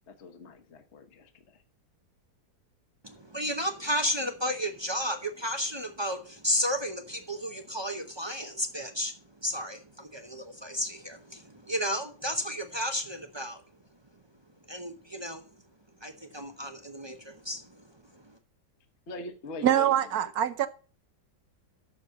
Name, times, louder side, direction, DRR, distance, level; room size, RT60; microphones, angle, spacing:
voice 1, 0.1-1.6 19.1-19.9 20.2-20.3, left 2 dB, 45° left, 1.3 m, -42 dB
voice 2, 3.0-9.1 9.4-13.6 14.7-15.4 16.0-17.9 18.1-18.4, equal, 35° right, 0.4 m, -33 dB
voice 3, 19.6-20.7, right 11 dB, 70° right, 1.1 m, -24 dB
7.4 x 6.6 x 6.7 m
omnidirectional pair, 1.8 m